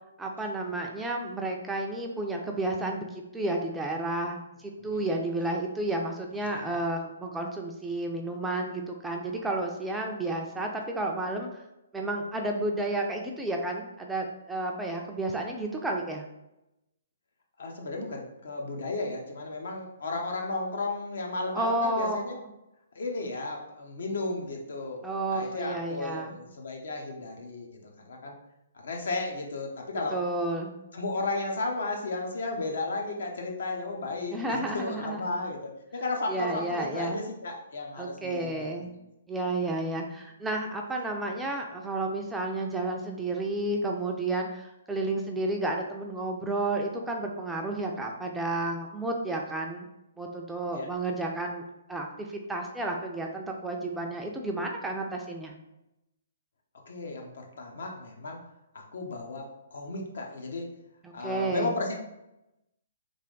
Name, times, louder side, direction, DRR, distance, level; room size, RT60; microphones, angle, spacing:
voice 1, 0.2-11.6 11.9-16.2 21.5-22.2 25.0-26.4 30.1-30.7 34.3-35.3 36.3-37.2 38.0-38.9 39.3-49.9 50.2-55.5 61.0-61.8, right 2 dB, 5° right, 1 dB, 0.4 m, -31 dB
voice 2, 6.4-6.8 17.6-22.4 22.9-25.0 25.3-28.4 28.8-30.2 30.9-39.0 50.7-50.9 56.9-58.4 58.7-60.7 61.1-61.9, left 2 dB, 70° left, 1 dB, 0.8 m, -34 dB
3.4 x 2.5 x 3.8 m, 0.89 s
hypercardioid pair, 145°, 0 cm